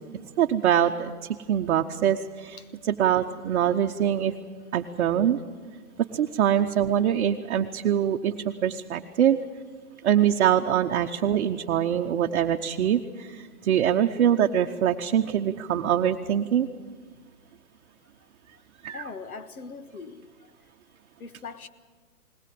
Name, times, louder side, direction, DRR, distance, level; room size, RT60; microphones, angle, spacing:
voice 1, 0.4-1.1 1.5-2.6 2.8-4.3 4.7-5.4 6.1-9.4 10.0-16.7 18.8-19.0, right 10 dB, 50° right, 3 dB, 0.9 m, -24 dB
voice 2, 18.9-20.3 21.2-21.7, left 4 dB, 80° left, 11 dB, 1.6 m, -40 dB
20.5 x 20.0 x 7.7 m, 1.5 s
hypercardioid pair, 145°, 44 cm